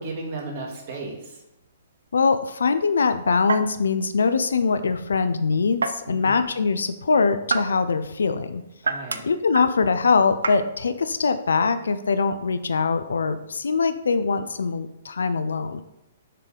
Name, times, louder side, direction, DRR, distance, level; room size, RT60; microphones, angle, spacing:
voice 1, 0.0-1.3 6.1-6.3 8.8-9.2, right 3 dB, 55° right, -2 dB, 2.2 m, -34 dB
sound 1, 1.0-13.9, right 4 dB, 85° right, 0.5 m, -34 dB
voice 2, 2.1-8.6 9.2-15.8, left 4 dB, 85° left, 11 dB, 0.4 m, -22 dB
6.6 x 3.6 x 5.1 m, 0.87 s
hypercardioid pair, 130°, 0 cm